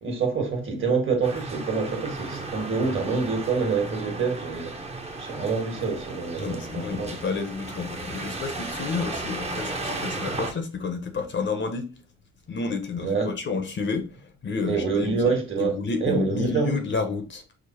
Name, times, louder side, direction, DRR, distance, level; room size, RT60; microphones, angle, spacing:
voice 1, 0.0-4.7 5.2-7.2 13.0-13.3 14.6-15.8 16.0-16.7, right 4 dB, 40° right, 1.5 m, -26 dB
sound 1, 1.2-10.5, right 2 dB, 20° right, 0.8 m, -35 dB
voice 2, 6.4-11.9 12.5-15.2 15.6-17.4, left 4 dB, 40° left, 0.7 m, -30 dB
4.9 x 2.0 x 4.2 m
cardioid pair, 90°, 30 cm